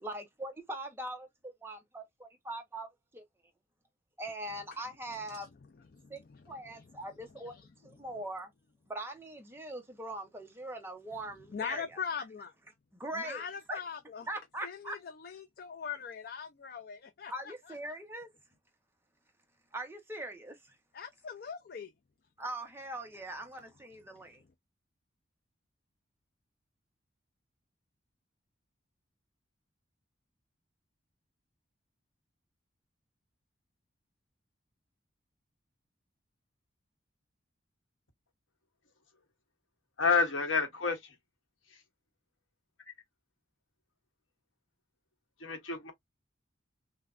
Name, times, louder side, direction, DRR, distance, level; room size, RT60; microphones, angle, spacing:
voice 1, 0.0-3.2 4.2-5.5 6.1-6.2 6.5-7.5 7.8-8.5 8.9-11.8 13.0-13.4 13.7-13.8 14.3-15.0 17.3-18.3 19.7-20.8 22.4-24.4, right 1 dB, 10° right, 0.7 m, -41 dB
voice 2, 5.9-6.4 6.7-6.8 7.4-7.7 11.5-12.5 13.1-14.3 14.6-17.7 20.9-21.9, left 7 dB, 50° left, 0.4 m, -41 dB
voice 3, 40.0-41.1 45.4-45.9, left 5 dB, 85° left, 1.2 m, -29 dB
5.5 x 2.2 x 2.4 m
head